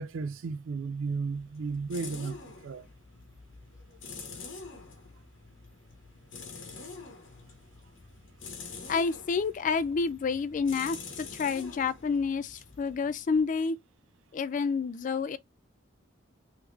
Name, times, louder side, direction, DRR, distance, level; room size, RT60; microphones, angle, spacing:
voice 1, 0.0-2.9, right 4 dB, 85° right, 0.4 m, -34 dB
sound 1, 1.0-13.6, left 4 dB, 85° left, 1.3 m, -46 dB
voice 2, 8.9-13.8 14.3-15.4, left 5 dB, 40° left, 0.3 m, -29 dB
3.5 x 3.1 x 3.3 m
head